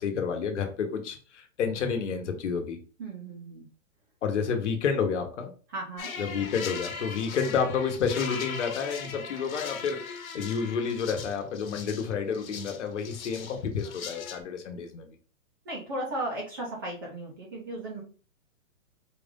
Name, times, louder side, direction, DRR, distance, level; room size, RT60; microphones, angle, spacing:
voice 1, 0.0-2.8 4.2-5.5 6.2-15.1, left 6 dB, 60° left, 5 dB, 1.2 m, -30 dB
voice 2, 3.0-3.7 5.7-6.1 15.7-18.0, right 1 dB, 15° right, -2 dB, 0.5 m, -35 dB
sound 1, 6.0-14.4, left 6 dB, 75° left, 1.2 m, -39 dB
4.8 x 2.5 x 3.6 m, 0.38 s
hypercardioid pair, 160°, 41 cm